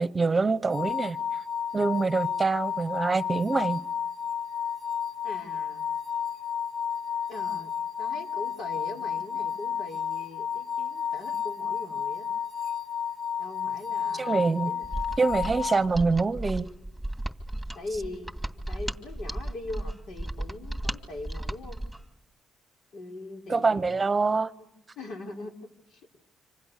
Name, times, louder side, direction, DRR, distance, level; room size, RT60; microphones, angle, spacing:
voice 1, 0.0-1.4 1.7-3.8 14.1-14.7 15.2-16.7 23.5-24.5, right 4 dB, 25° right, 1.1 m, -25 dB
sound 1, 0.7-15.9, left 7 dB, 50° left, 2.5 m, -32 dB
voice 2, 5.2-5.8 7.3-7.7 8.0-12.3 13.4-14.9 15.9-16.0 17.7-21.8 22.9-24.0 24.6-24.7 25.0-25.5 25.9-26.0, left 2 dB, 70° left, 5.4 m, -41 dB
Mechanisms, 14.8-22.0, right 1 dB, ahead, 2.5 m, -35 dB
27.0 x 26.0 x 6.8 m
cardioid pair, 90°, 0 cm